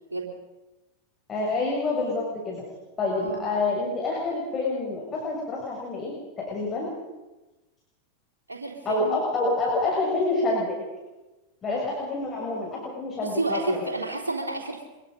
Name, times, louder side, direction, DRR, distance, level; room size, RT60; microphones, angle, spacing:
voice 1, 1.3-2.6 3.0-6.9 8.9-10.8 11.6-13.9, left 3 dB, 25° left, -3 dB, 7.1 m, -27 dB
voice 2, 3.1-3.4 8.5-9.2 13.2-14.9, right 3 dB, 80° right, -1 dB, 3.4 m, -30 dB
25.5 x 22.5 x 5.4 m, 1.1 s
figure-of-eight pair, 90°, 0 cm